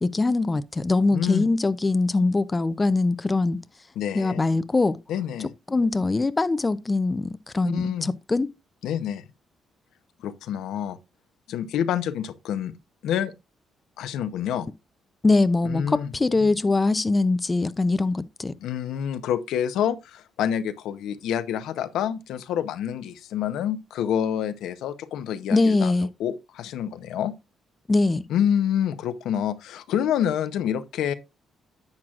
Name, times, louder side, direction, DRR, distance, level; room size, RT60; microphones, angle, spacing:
voice 1, 0.0-3.6 4.1-5.0 5.7-8.5 15.2-18.5 25.5-26.1 27.9-28.2, left 3 dB, 25° left, 0.5 m, -22 dB
voice 2, 1.1-1.5 4.0-4.4 5.1-5.5 7.6-8.1 8.8-9.2 10.2-11.0 11.5-12.7 13.0-13.3 14.0-14.7 15.6-16.1 18.6-27.3 28.3-31.1, left 9 dB, 85° left, 0.8 m, -27 dB
10.5 x 7.4 x 2.4 m
cardioid pair, 90°, 0 cm